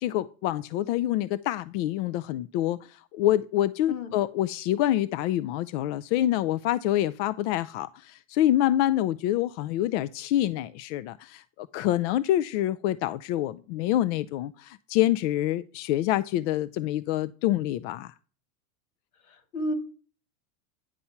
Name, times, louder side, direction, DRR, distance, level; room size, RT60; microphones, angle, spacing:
voice 1, 0.0-18.1, left 13 dB, 55° left, 0.5 m, -26 dB
voice 2, 19.3-19.7, left 1 dB, 75° left, 2.3 m, -32 dB
9.8 x 4.3 x 5.8 m
supercardioid pair, 120°, 42 cm